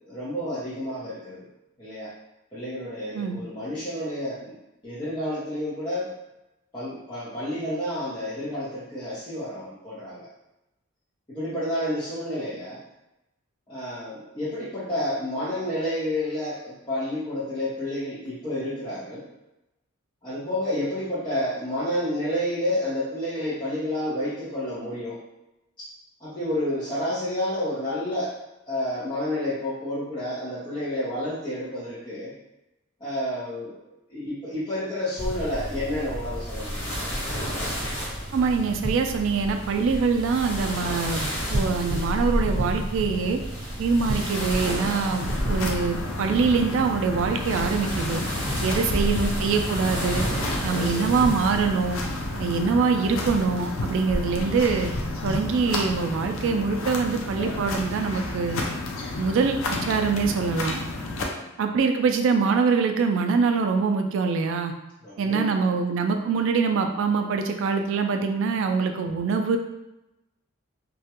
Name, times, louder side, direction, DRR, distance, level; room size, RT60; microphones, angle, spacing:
voice 1, 0.1-1.5 1.8-2.1 2.5-4.5 4.8-6.1 6.7-10.3 11.3-12.8 13.7-19.3 20.2-25.2 25.8-25.9 26.2-28.3 28.7-32.3 33.0-33.8 34.1-37.0 48.6-49.0 50.7-51.2 61.3-61.5 65.0-65.8, left 1 dB, 25° left, -12 dB, 0.6 m, -30 dB
sound 1, 35.2-52.7, equal, 45° left, 1.1 m, -31 dB
voice 2, 38.3-43.4 43.8-48.2 48.6-50.2 50.6-52.0 52.4-54.9 55.2-58.6 59.2-60.8 61.6-64.7 65.2-69.6, right 5 dB, 65° right, 5 dB, 0.3 m, -24 dB
sound 2, 45.2-61.2, left 2 dB, 70° left, 0.4 m, -31 dB
2.3 x 2.1 x 2.8 m, 0.92 s
head